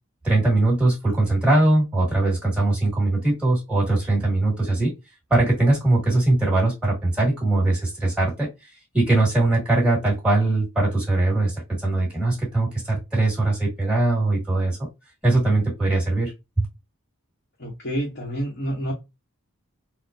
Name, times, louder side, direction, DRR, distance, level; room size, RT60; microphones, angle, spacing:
voice 1, 0.2-4.9 5.3-8.5 8.9-14.8 15.2-16.3 16.6-16.7, right 2 dB, 5° right, -5 dB, 1.7 m, -21 dB
voice 2, 17.6-18.9, right 1 dB, 50° left, -4 dB, 0.8 m, -28 dB
3.8 x 2.0 x 2.6 m, 0.23 s
head